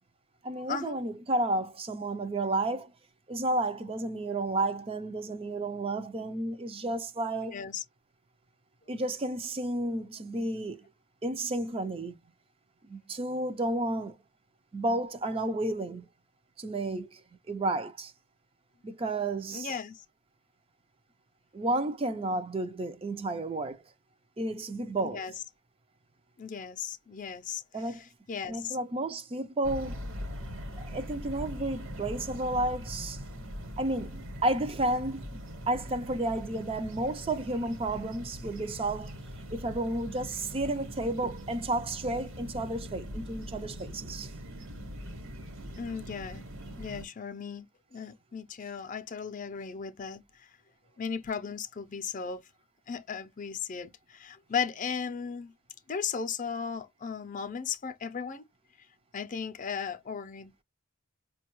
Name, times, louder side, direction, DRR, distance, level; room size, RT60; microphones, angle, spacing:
voice 1, 0.4-2.9 3.3-7.6 8.9-10.8 11.2-12.2 12.8-14.2 14.7-16.1 16.6-17.2 17.5-18.1 18.8-19.8 21.5-23.8 24.4-25.2 27.7-28.0 28.5-30.0 30.8-33.2 33.8-35.4 35.7-39.1 39.5-44.3, right 2 dB, 25° right, 0.4 m, -32 dB
voice 2, 7.5-7.8 19.5-19.9 25.0-25.3 26.4-27.6 28.3-28.8 45.8-46.4 46.8-47.7 47.9-50.2 51.0-52.4 52.9-55.5 55.9-58.4 59.1-60.5, left 6 dB, 35° left, 0.5 m, -36 dB
sound 1, 29.6-47.0, equal, 60° right, 1.1 m, -42 dB
5.1 x 2.3 x 2.9 m
head